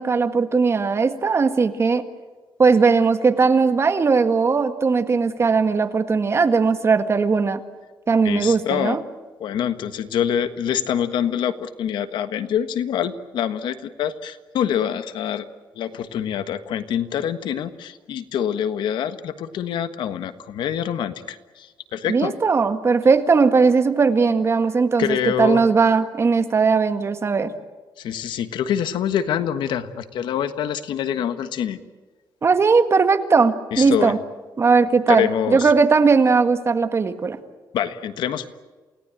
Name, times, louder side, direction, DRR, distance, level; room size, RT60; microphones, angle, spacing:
voice 1, 0.0-2.1 2.6-7.6 8.1-9.0 22.1-27.5 32.4-34.2 34.6-37.4, right 4 dB, 35° right, 9 dB, 1.8 m, -18 dB
voice 2, 8.2-9.0 9.4-15.4 15.7-22.3 25.0-25.6 28.0-31.8 33.7-34.1 35.1-35.7 37.7-38.5, left 9 dB, 85° left, 11 dB, 1.4 m, -25 dB
28.5 x 18.0 x 9.1 m, 1.4 s
cardioid pair, 120°, 8 cm